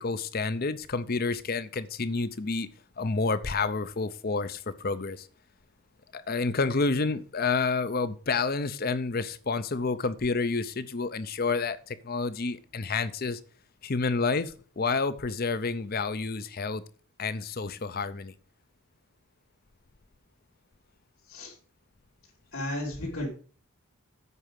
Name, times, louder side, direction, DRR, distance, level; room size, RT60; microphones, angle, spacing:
voice 1, 0.0-2.7 3.0-5.3 6.1-13.4 13.8-16.8 17.2-18.3, left 4 dB, 40° left, 14 dB, 0.6 m, -29 dB
voice 2, 22.5-23.3, left 1 dB, 70° left, -6 dB, 2.8 m, -33 dB
8.3 x 4.8 x 7.4 m, 0.41 s
head